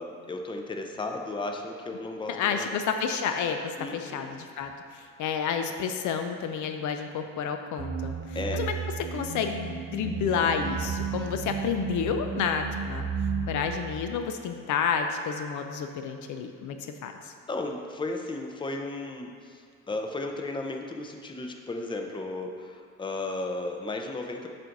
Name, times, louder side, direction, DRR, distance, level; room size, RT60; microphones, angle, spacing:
voice 1, 0.0-2.8 3.8-4.3 8.3-8.6 17.5-24.5, left 2 dB, 15° left, 3 dB, 0.5 m, -34 dB
voice 2, 2.3-8.8 9.1-13.1 13.5-16.8 17.0-17.3, left 6 dB, 75° left, 6 dB, 0.5 m, -30 dB
sound 1, 7.8-13.7, right 6 dB, 40° right, 0.7 m, -33 dB
7.3 x 2.6 x 5.3 m, 2.3 s
cardioid pair, 90°, 30 cm